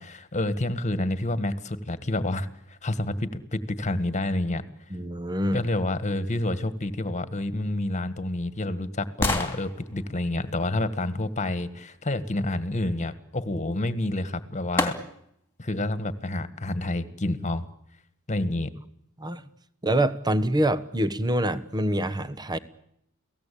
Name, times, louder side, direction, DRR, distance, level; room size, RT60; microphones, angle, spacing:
voice 1, 0.0-4.6 5.5-14.9 15.6-17.6 18.3-18.7, left 1 dB, 35° left, 13 dB, 1.7 m, -28 dB
voice 2, 4.9-5.6 19.2-19.4 19.8-22.6, right 1 dB, 20° right, 14 dB, 1.2 m, -25 dB
sound 1, 7.6-11.8 13.9-14.0 14.8-15.5 16.0-16.1, left 2 dB, 10° left, 3.0 m, -33 dB
29.5 x 18.0 x 8.6 m, 0.73 s
head